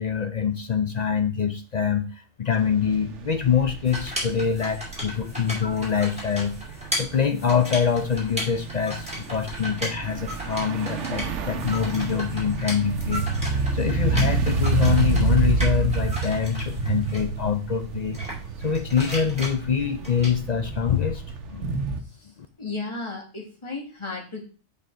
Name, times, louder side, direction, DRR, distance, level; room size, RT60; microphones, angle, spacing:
voice 1, 0.0-2.1 2.4-6.6 7.0-13.3 13.7-18.2 18.6-21.2 21.5-21.7, left 7 dB, 50° left, 7 dB, 0.5 m, -25 dB
sound 1, 2.5-22.0, right 4 dB, 85° right, 1.1 m, -29 dB
sound 2, 3.8-17.2 18.1-20.3, equal, 5° right, 2.5 m, -35 dB
voice 2, 22.6-24.5, left 3 dB, 25° left, -1 dB, 1.7 m, -34 dB
5.3 x 5.2 x 3.7 m, 0.37 s
omnidirectional pair, 1.2 m